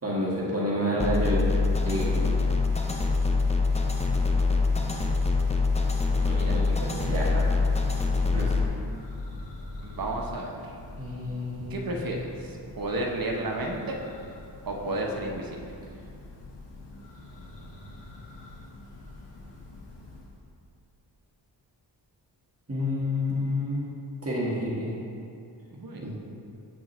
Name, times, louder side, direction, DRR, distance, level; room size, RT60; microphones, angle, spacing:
voice 1, 0.0-1.4 1.8-2.2 6.2-7.8 8.3-8.5 11.0-11.9 22.7-23.8 24.2-24.9 26.0-26.1, left 1 dB, 35° right, -7 dB, 1.5 m, -29 dB
sound 1, 1.0-8.6, left 3 dB, 15° left, 0.6 m, -24 dB
Church bell, 6.2-20.5, left 2 dB, 75° left, 1.0 m, -45 dB
voice 2, 6.2-6.6 9.8-10.7 11.7-14.0 14.7-15.6 25.7-26.1, right 1 dB, 55° right, 0 dB, 1.0 m, -32 dB
7.6 x 6.0 x 3.1 m, 2.5 s
cardioid pair, 70°, 43 cm